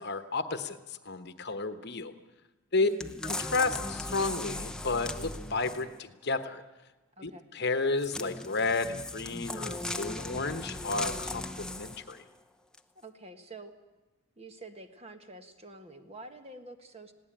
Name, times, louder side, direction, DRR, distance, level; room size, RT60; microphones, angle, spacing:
voice 1, 0.0-2.1 2.7-2.9 3.2-6.6 7.2-12.2, left 3 dB, 50° left, 10 dB, 1.1 m, -32 dB
voice 2, 2.7-3.1 7.2-7.5 12.9-13.7 14.4-17.1, right 2 dB, 30° right, 7 dB, 1.5 m, -47 dB
sound 1, 3.0-6.0 8.0-12.2 12.7-12.8, left 2 dB, 5° left, 0.7 m, -38 dB
20.5 x 17.0 x 8.9 m, 1.1 s
head